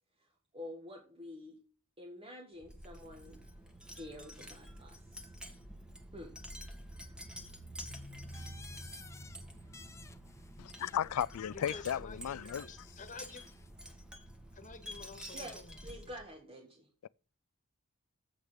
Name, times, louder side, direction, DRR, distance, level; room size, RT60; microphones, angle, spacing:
voice 1, 0.5-1.6 2.0-3.4 3.8-5.3 6.1-6.4 15.3-16.9, left 1 dB, 25° right, 1.7 m, -48 dB
Wind chime, 2.6-16.3, equal, 5° right, 1.7 m, -49 dB
Keyboard (musical), 7.8-10.7, left 3 dB, 65° right, 3.4 m, -56 dB
sound 1, 8.3-9.4 9.7-11.2 12.2-13.7, left 4 dB, 15° left, 0.8 m, -56 dB
voice 2, 10.6-12.7 17.0-17.1, left 9 dB, 75° left, 0.3 m, -35 dB
voice 3, 11.5-13.4 14.5-15.7, left 3 dB, 35° left, 1.7 m, -50 dB
8.1 x 6.6 x 6.5 m
head